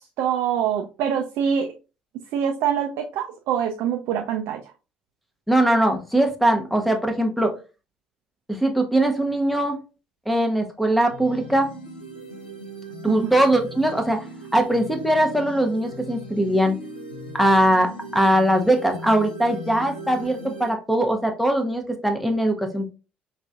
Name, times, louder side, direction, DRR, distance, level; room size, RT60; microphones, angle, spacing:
voice 1, 0.2-1.7 2.3-4.7 13.1-13.3, right 8 dB, 55° right, 3 dB, 0.4 m, -25 dB
voice 2, 5.5-7.5 8.5-9.8 10.3-11.7 13.0-14.3 14.5-16.8 17.3-22.9, right 1 dB, ahead, 5 dB, 0.7 m, -21 dB
sound 1, 11.1-20.7, equal, 80° left, 0.5 m, -39 dB
4.9 x 2.4 x 2.3 m, 0.32 s
figure-of-eight pair, 50°, 5 cm